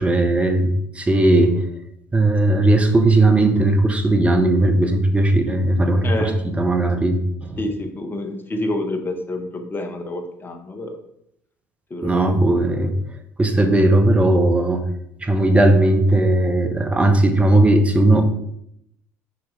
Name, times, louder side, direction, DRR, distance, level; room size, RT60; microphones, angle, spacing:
voice 1, 0.0-1.6 2.1-6.3 6.6-7.6 12.0-12.9 13.4-14.9 15.2-18.3, right 2 dB, 15° right, 5 dB, 1.0 m, -17 dB
voice 2, 6.0-6.4 7.6-11.0 11.9-12.4, left 1 dB, 25° left, 5 dB, 1.1 m, -28 dB
6.9 x 4.7 x 3.3 m, 0.75 s
figure-of-eight pair, 60°, 8 cm